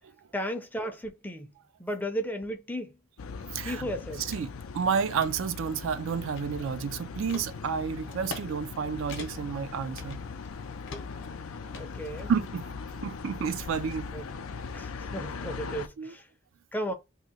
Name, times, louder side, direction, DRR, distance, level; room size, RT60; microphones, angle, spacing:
voice 1, 0.3-1.5 1.8-2.9 3.6-4.2 11.8-12.3 14.1-14.2 14.7-16.3 16.7-16.9, equal, 10° left, 0.5 m, -34 dB
sound 1, 3.2-15.9, left 5 dB, 75° left, 0.5 m, -40 dB
voice 2, 3.5-3.9 4.2-10.2 12.3-12.7 13.0-14.1 16.0-16.1, right 6 dB, 65° right, 0.3 m, -30 dB
sound 2, 4.3-4.4 4.9-5.3 5.9-6.8 7.3-7.5 8.1-8.5 8.7-8.8 9.1-9.6 10.0-10.5 10.9-11.3 11.7-12.5, left 4 dB, 60° left, 0.8 m, -43 dB
2.8 x 2.7 x 4.1 m
head